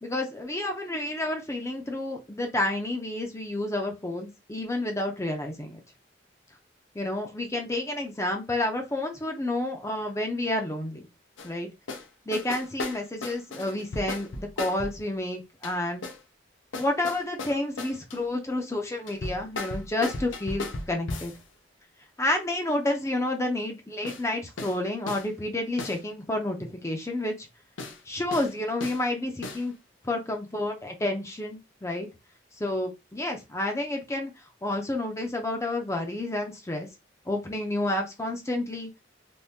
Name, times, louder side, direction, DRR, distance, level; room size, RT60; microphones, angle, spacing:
voice 1, 0.0-5.8 6.9-11.1 11.4-11.7 12.3-16.0 16.8-21.3 22.2-27.5 28.1-29.7 30.0-32.1 32.6-34.3 34.6-36.9 37.3-38.9, left 1 dB, 15° left, 3 dB, 0.6 m, -30 dB
sound 1, 11.4-11.5 11.9-12.1 12.3-15.0 15.6-16.2 16.7-18.2 19.1-21.4 24.0-24.2 24.6-24.8 25.1-25.3 25.8-26.0 27.8-28.0 28.3-28.5 28.8-29.0 29.4-29.7, left 2 dB, 85° left, 0.6 m, -36 dB
3.5 x 2.7 x 2.7 m, 0.24 s
head